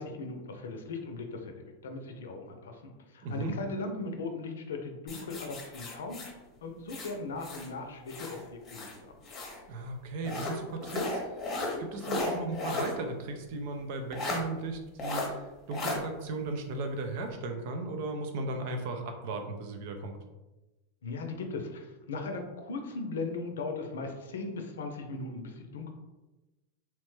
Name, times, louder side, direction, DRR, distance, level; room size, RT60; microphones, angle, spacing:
voice 1, 0.0-6.2 6.6-8.9 21.0-25.9, left 3 dB, 85° left, 4 dB, 0.5 m, -38 dB
voice 2, 3.2-3.5 9.7-20.2, right 2 dB, 65° right, 5 dB, 0.5 m, -36 dB
sound 1, 5.1-7.7 8.1-9.6 10.2-13.0 13.3-13.4 14.1-14.4 15.0-15.3 15.7-16.0, left 2 dB, 30° left, 0.7 m, -35 dB
3.0 x 2.1 x 3.1 m, 1.1 s
hypercardioid pair, 115°, 0 cm